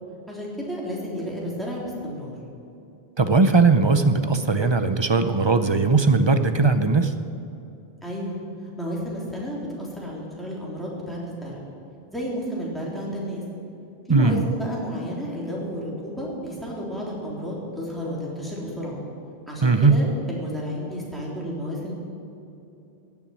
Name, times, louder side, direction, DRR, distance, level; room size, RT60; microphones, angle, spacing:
voice 1, 0.3-2.3 8.0-8.4 8.8-11.6 12.1-13.4 14.1-19.0 19.5-21.9, equal, ahead, -5 dB, 3.5 m, -32 dB
voice 2, 3.2-7.1 14.1-14.4 19.6-20.0, right 4 dB, 30° right, 9 dB, 0.6 m, -19 dB
16.5 x 7.1 x 9.7 m, 2.8 s
omnidirectional pair, 1.1 m